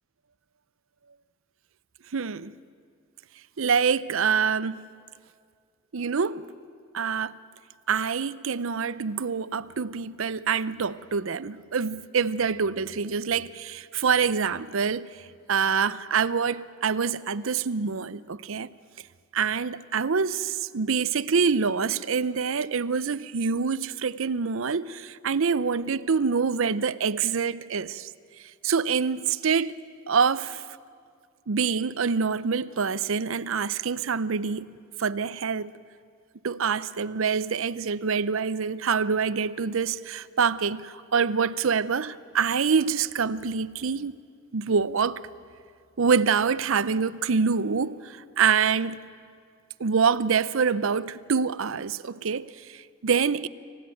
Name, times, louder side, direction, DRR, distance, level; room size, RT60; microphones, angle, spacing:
voice 1, 2.1-2.5 3.6-4.9 5.9-6.5 6.9-7.4 7.9-15.1 15.5-18.7 19.3-28.1 28.6-29.7 30.1-30.6 31.5-34.7 35.0-35.7 36.4-44.2 44.5-45.2 46.0-49.0 49.8-53.5, right 5 dB, 70° right, 0.6 m, -26 dB
26.5 x 15.5 x 9.1 m
head